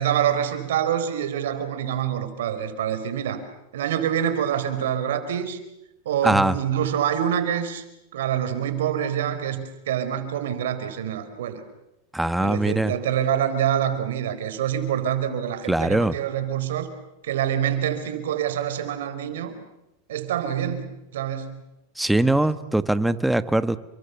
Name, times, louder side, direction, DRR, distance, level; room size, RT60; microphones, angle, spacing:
voice 1, 0.0-3.4 3.7-5.6 6.0-7.8 8.1-11.6 12.4-16.9 17.2-19.5 20.1-21.6 22.2-22.4, right 9 dB, 80° right, 10 dB, 4.4 m, -26 dB
voice 2, 6.2-6.5 12.1-12.9 15.7-16.1 22.0-23.8, right 1 dB, 5° right, 13 dB, 1.2 m, -21 dB
29.5 x 24.5 x 7.0 m, 0.92 s
hypercardioid pair, 120°, 0 cm